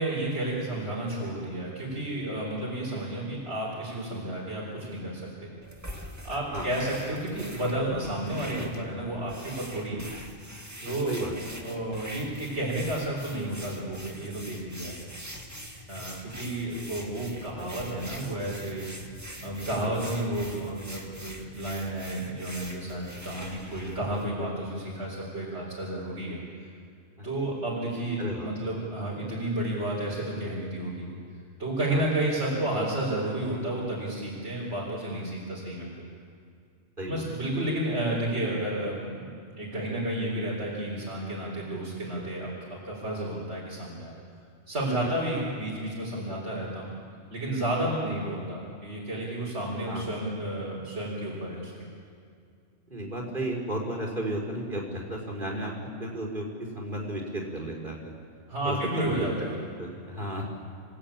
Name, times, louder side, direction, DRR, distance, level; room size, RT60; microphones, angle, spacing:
voice 1, 0.0-5.5 6.2-10.0 10.8-11.1 11.6-15.0 15.9-19.1 19.4-26.4 27.2-31.1 31.6-36.1 37.0-39.3 39.6-42.5 42.8-44.1 44.7-46.9 47.3-51.7 58.5-59.6, right 1 dB, 65° right, -6 dB, 4.8 m, -31 dB
sound 1, 5.6-24.2, equal, 15° right, 2.2 m, -43 dB
voice 2, 10.8-11.3 19.8-19.9 28.2-28.5 31.9-32.0 37.0-37.3 49.9-50.0 52.9-55.7 56.0-56.4 56.7-58.0 58.6-59.3 59.8-60.4, right 1 dB, 45° right, 0 dB, 4.7 m, -33 dB
28.5 x 15.5 x 8.9 m, 2.3 s
omnidirectional pair, 1.3 m